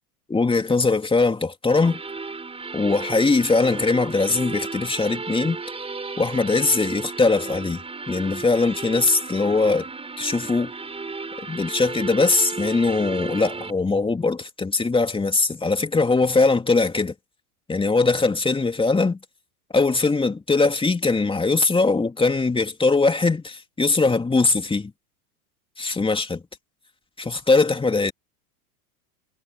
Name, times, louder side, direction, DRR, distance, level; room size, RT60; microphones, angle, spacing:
voice 1, 0.3-2.0 2.7-5.6 6.2-7.8 8.1-9.9 10.2-10.7 11.5-17.1 17.7-19.2 19.7-24.9 25.8-26.4 27.2-28.1, left 3 dB, 10° left, 2.9 m, -21 dB
sound 1, 1.7-13.7, right 4 dB, 10° right, 5.8 m, -34 dB
hypercardioid pair, 105°, 46 cm